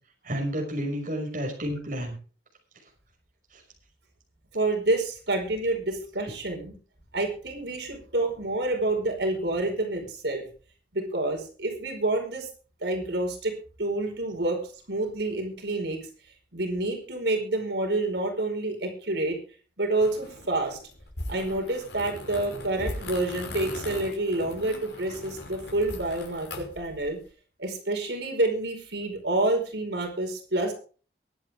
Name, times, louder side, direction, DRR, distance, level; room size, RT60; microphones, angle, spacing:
voice 1, 0.2-2.2 3.5-3.6, equal, 50° right, 0 dB, 5.9 m, -31 dB
voice 2, 4.5-6.8 7.1-10.4 10.9-12.5 12.8-13.5 13.8-14.6 14.9-16.0 16.5-19.4 19.8-20.8 21.3-27.2 27.6-30.7, right 2 dB, 80° right, 2 dB, 4.9 m, -28 dB
sound 1, 20.0-27.2, left 1 dB, 75° left, 5.7 m, -39 dB
23.0 x 9.0 x 3.5 m, 0.39 s
head